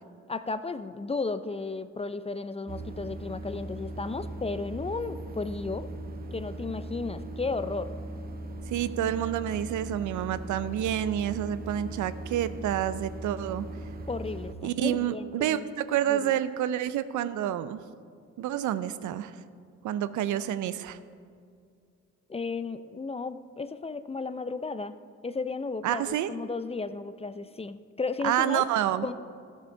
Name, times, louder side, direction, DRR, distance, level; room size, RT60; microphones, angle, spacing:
voice 1, 0.3-5.9 6.3-7.9 14.1-15.7 16.1-16.4 22.3-24.9 25.2-28.7 29.0-29.1, left 3 dB, 20° left, 12 dB, 0.5 m, -34 dB
sound 1, 2.7-14.6, right 1 dB, 30° right, 0.9 m, -39 dB
voice 2, 8.7-13.7 14.6-17.8 18.4-19.3 19.8-21.0 25.8-26.3 28.2-29.1, right 11 dB, 75° right, 14 dB, 0.5 m, -28 dB
13.5 x 6.8 x 4.6 m, 2.3 s
supercardioid pair, 65°, 30 cm